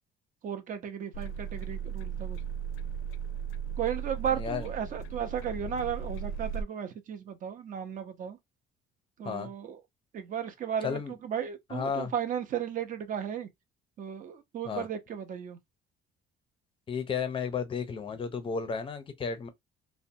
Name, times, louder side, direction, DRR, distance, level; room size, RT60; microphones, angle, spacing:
voice 1, 0.4-2.4 3.8-8.4 9.2-9.8 10.1-13.5 14.0-15.6, right 8 dB, 40° right, 0.6 m, -35 dB
sound 1, 1.1-6.6, right 7 dB, 85° left, 0.4 m, -36 dB
voice 2, 4.3-4.7 9.2-9.5 10.8-11.1 11.7-12.1 14.7-14.9 16.9-19.5, left 6 dB, 25° left, 0.5 m, -33 dB
2.6 x 2.1 x 2.6 m
cardioid pair, 160°, 21 cm